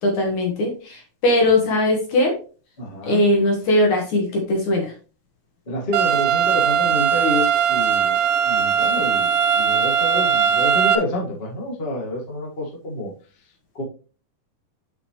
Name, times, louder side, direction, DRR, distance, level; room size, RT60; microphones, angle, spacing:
voice 1, 0.0-2.3 3.0-4.9, left 1 dB, 55° left, 1 dB, 2.3 m, -20 dB
voice 2, 2.8-3.2 5.7-8.2 8.4-9.3 9.5-13.1 13.7-13.8, left 1 dB, 85° left, -2 dB, 0.5 m, -28 dB
sound 1, 5.9-11.0, right 7 dB, 80° right, 2.0 m, -19 dB
9.7 x 5.1 x 3.2 m, 0.37 s
omnidirectional pair, 5.0 m